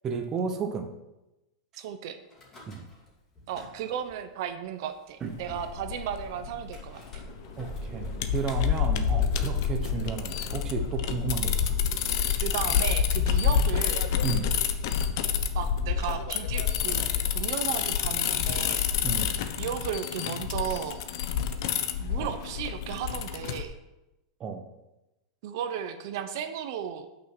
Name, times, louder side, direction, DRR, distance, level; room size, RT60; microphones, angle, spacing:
voice 1, 0.0-0.9 2.7-2.8 5.2-5.3 7.6-11.6 14.2-14.5 19.0-19.4 22.2-22.3 24.4-24.6, right 5 dB, 20° right, 4 dB, 0.8 m, -33 dB
voice 2, 1.8-2.2 3.5-7.0 12.4-14.1 15.5-17.1 17.3-18.9 19.6-21.0 22.0-23.7 25.4-27.1, right 9 dB, 50° right, 9 dB, 0.8 m, -34 dB
Car / Engine starting / Idling, 2.3-3.1 3.4-4.1 4.8-4.9 5.1-5.2 5.5-5.8 6.7-12.9, left 2 dB, 15° left, 2.5 m, -40 dB
sound 1, 5.3-23.6, left 8 dB, 50° left, 0.8 m, -28 dB
9.5 x 6.1 x 6.2 m, 0.97 s
supercardioid pair, 175°, 3 cm